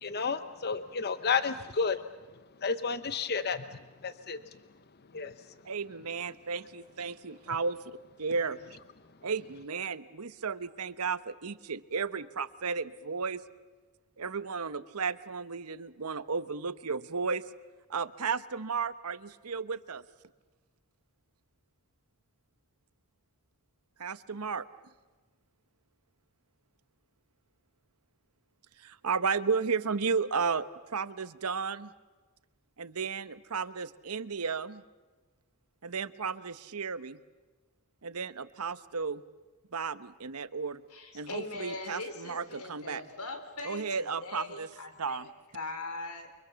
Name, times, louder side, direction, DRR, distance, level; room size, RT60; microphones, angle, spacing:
voice 1, 0.0-2.0 2.6-4.4 5.1-5.3, left 5 dB, 45° left, 12 dB, 0.9 m, -31 dB
voice 2, 5.6-7.8 8.2-8.6 9.2-13.4 14.2-17.5 17.9-20.0 24.0-24.7 28.8-31.9 32.8-34.8 35.8-37.2 38.0-39.2 39.7-40.8 41.1-43.0 43.6-44.7 45.0-45.3, right 5 dB, 90° right, 14 dB, 1.1 m, -33 dB
voice 3, 40.9-45.3 45.5-46.3, left 2 dB, 85° left, 7 dB, 4.2 m, -41 dB
29.5 x 24.0 x 7.0 m, 1.3 s
head